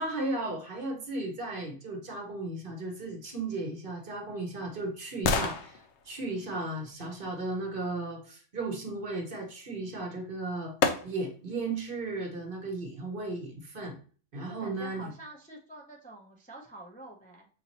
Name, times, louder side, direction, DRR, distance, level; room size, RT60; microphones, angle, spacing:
voice 1, 0.0-10.7 11.0-14.0 14.3-15.1, right 2 dB, 45° right, 3 dB, 1.0 m, -35 dB
sound 1, 3.7-7.8 9.9-10.0 10.8-11.5 12.0-12.1, left 5 dB, 65° left, 0.8 m, -34 dB
voice 2, 14.4-17.5, right 2 dB, 10° left, -1 dB, 0.5 m, -47 dB
5.7 x 2.8 x 2.8 m, 0.42 s
omnidirectional pair, 1.3 m